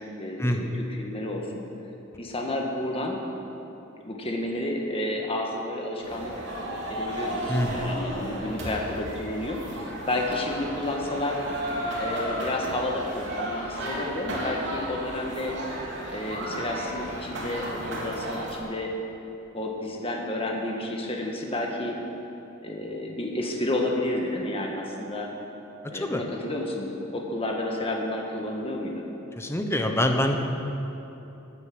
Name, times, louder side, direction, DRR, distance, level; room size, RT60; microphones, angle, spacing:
voice 1, 0.0-1.4 2.2-3.2 4.0-6.3 6.9-11.4 12.0-15.5 16.1-18.9 19.5-22.0 22.6-25.3 25.9-29.1, left 1 dB, 30° left, 0 dB, 1.6 m, -31 dB
sound 1, 6.0-18.6, right 1 dB, 60° right, 3.5 m, -33 dB
voice 2, 7.5-7.8 8.1-8.2 25.9-26.2 29.4-30.4, left 1 dB, 15° left, 4 dB, 1.1 m, -25 dB
15.5 x 9.6 x 7.7 m, 3.0 s
head